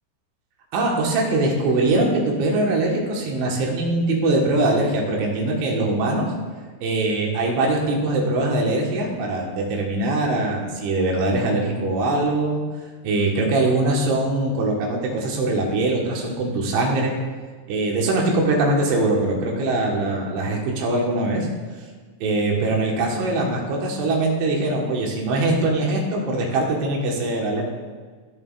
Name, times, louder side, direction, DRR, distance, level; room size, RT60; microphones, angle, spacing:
voice 1, 0.7-6.3 6.8-12.6 13.0-17.1 17.7-21.5 22.2-27.6, right 2 dB, 75° right, -1 dB, 3.6 m, -22 dB
16.0 x 7.6 x 2.5 m, 1.5 s
omnidirectional pair, 5.6 m